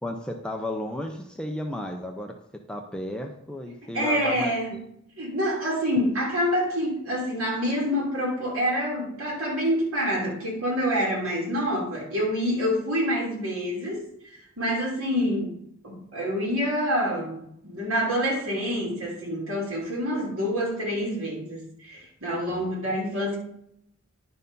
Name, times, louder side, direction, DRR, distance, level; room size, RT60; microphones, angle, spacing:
voice 1, 0.0-2.3 2.7-4.8 22.5-23.0, left 1 dB, 5° left, 2 dB, 0.5 m, -34 dB
voice 2, 3.9-4.7 5.2-14.0 14.3-15.6 15.8-23.4, equal, 80° right, -3 dB, 2.8 m, -27 dB
10.5 x 4.4 x 5.3 m, 0.74 s
head